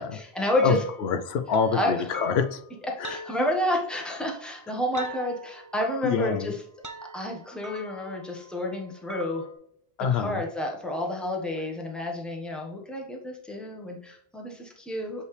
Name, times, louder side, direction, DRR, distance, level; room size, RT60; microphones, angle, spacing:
voice 1, 0.0-0.8 1.7-1.9 2.8-6.6 7.1-9.4 10.1-15.3, left 1 dB, ahead, 0 dB, 1.1 m, -30 dB
voice 2, 0.6-2.6 3.0-3.2 6.0-6.5 10.0-10.4, left 6 dB, 80° left, 8 dB, 0.9 m, -26 dB
sound 1, 0.6-9.5, right 1 dB, 25° right, 0.5 m, -44 dB
6.3 x 5.4 x 3.2 m, 0.72 s
omnidirectional pair, 1.1 m